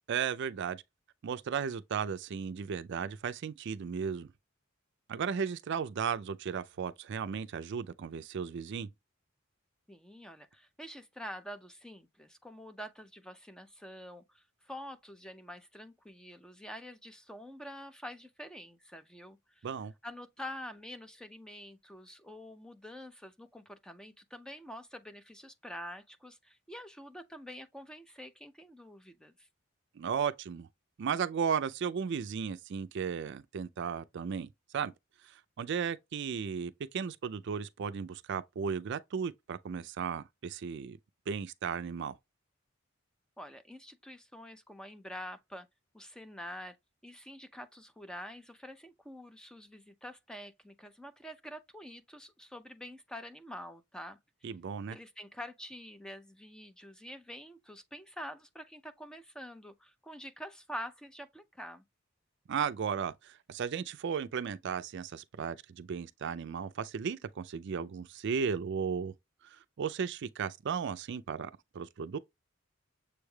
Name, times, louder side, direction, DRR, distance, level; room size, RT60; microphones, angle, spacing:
voice 1, 0.1-0.8 1.2-4.3 5.1-8.9 19.6-19.9 30.0-30.7 31.0-34.9 35.2-41.0 41.3-42.2 54.4-55.0 62.5-69.1 69.4-72.2, right 6 dB, 60° right, 0.4 m, -35 dB
voice 2, 9.9-19.7 20.0-29.5 43.4-45.7 45.9-46.8 47.0-54.2 54.9-61.8, equal, 5° left, 0.4 m, -46 dB
7.0 x 3.2 x 2.3 m
head